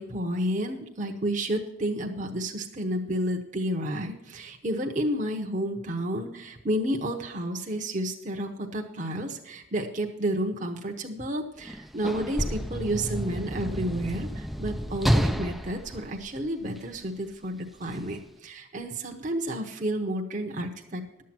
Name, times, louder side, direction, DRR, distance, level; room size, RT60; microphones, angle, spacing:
voice 1, 0.0-21.2, right 1 dB, 35° right, 1 dB, 0.9 m, -31 dB
Sliding door / Slam, 11.6-17.0 17.9-18.0, equal, ahead, 0.4 m, -30 dB
12.0 x 7.5 x 6.0 m, 0.85 s
head